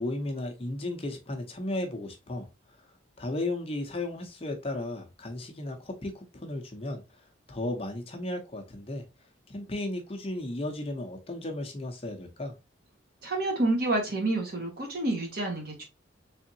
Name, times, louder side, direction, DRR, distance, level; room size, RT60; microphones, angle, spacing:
voice 1, 0.0-2.5 3.2-7.0 7.5-9.0 9.5-12.5, left 1 dB, 30° left, 0.6 m, -34 dB
voice 2, 13.2-15.8, right 2 dB, 50° right, 1.2 m, -28 dB
3.7 x 3.4 x 2.7 m
head